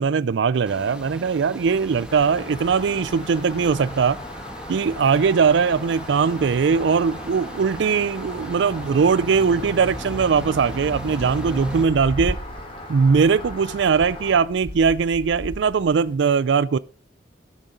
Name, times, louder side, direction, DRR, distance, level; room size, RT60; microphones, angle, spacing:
voice 1, 0.0-4.2 4.7-12.4 12.9-16.8, right 5 dB, 75° right, 0.4 m, -20 dB
sound 1, 0.7-11.8, equal, 5° right, 1.4 m, -37 dB
sound 2, 1.6-16.2, left 1 dB, 50° left, 1.4 m, -40 dB
Rain, 2.1-14.4, left 1 dB, 30° left, 2.9 m, -39 dB
12.5 x 6.3 x 5.2 m
head